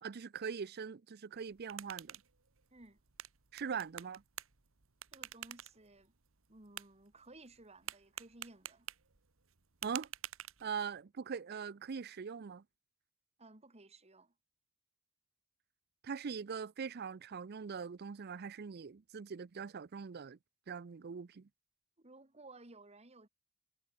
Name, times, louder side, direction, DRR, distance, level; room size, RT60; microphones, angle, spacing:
voice 1, 0.0-2.2 3.5-4.2 9.8-10.1 10.6-12.6 16.0-20.4 20.7-21.5, right 6 dB, 50° right, 0.5 m, -42 dB
sound 1, 1.3-11.0, right 11 dB, 70° right, 1.6 m, -50 dB
voice 2, 5.1-6.1 6.5-8.9 13.4-14.3 22.0-23.3, right 2 dB, 30° right, 2.3 m, -57 dB
head